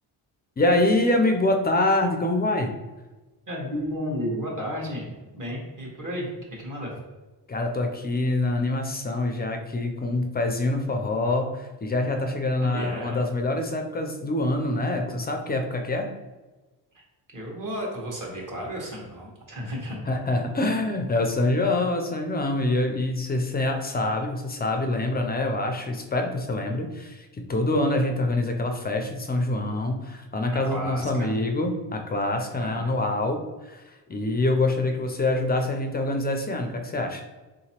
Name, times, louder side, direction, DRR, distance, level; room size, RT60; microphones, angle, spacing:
voice 1, 0.6-2.7 7.5-16.1 20.1-37.2, left 2 dB, 25° left, 4 dB, 0.3 m, -25 dB
voice 2, 3.5-5.1 5.3-6.3 6.6-6.9 12.6-13.2 16.9-17.0 17.3-20.0 30.7-31.3 32.6-33.0, equal, 45° right, -2 dB, 1.3 m, -33 dB
3.6 x 2.9 x 2.8 m, 1.2 s
cardioid pair, 105°, 44 cm